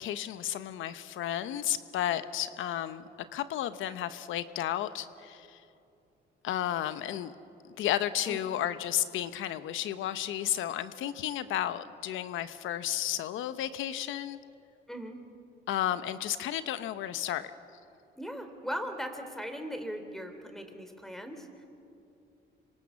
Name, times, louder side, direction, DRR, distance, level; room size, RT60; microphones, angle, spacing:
voice 1, 0.0-5.6 6.4-7.3 7.8-14.4 15.7-17.5, left 12 dB, 85° left, 12 dB, 0.9 m, -33 dB
voice 2, 18.2-21.5, equal, ahead, 7 dB, 3.4 m, -39 dB
26.5 x 25.0 x 7.2 m, 2.6 s
cardioid pair, 90°, 20 cm